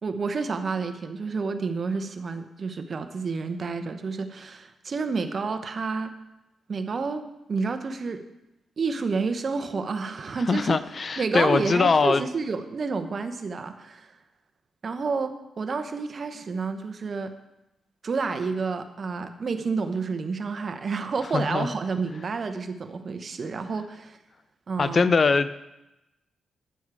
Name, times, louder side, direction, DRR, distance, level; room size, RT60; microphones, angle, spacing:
voice 1, 0.0-6.1 6.7-8.2 8.8-10.8 11.2-14.2 14.8-17.3 18.0-24.2 24.7-25.1, right 4 dB, 45° right, 0.9 m, -30 dB
voice 2, 10.5-12.2 21.3-21.7 24.8-25.5, left 4 dB, 40° left, 0.4 m, -22 dB
10.0 x 7.1 x 4.8 m
cardioid pair, 105°, 0 cm